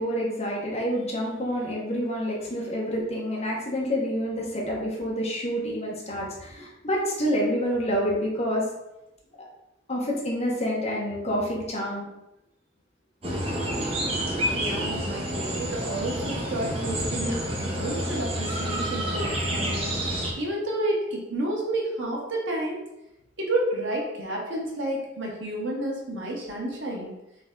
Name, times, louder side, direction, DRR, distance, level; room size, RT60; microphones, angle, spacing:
voice 1, 0.0-8.7 9.9-12.1 15.5-15.6, equal, 35° left, -3 dB, 1.1 m, -28 dB
sound 1, 13.2-20.3, right 1 dB, 30° right, 0.7 m, -29 dB
voice 2, 14.5-19.9 20.4-22.8 23.4-27.2, right 1 dB, 85° right, -3 dB, 1.3 m, -30 dB
3.9 x 3.5 x 3.8 m, 0.90 s
head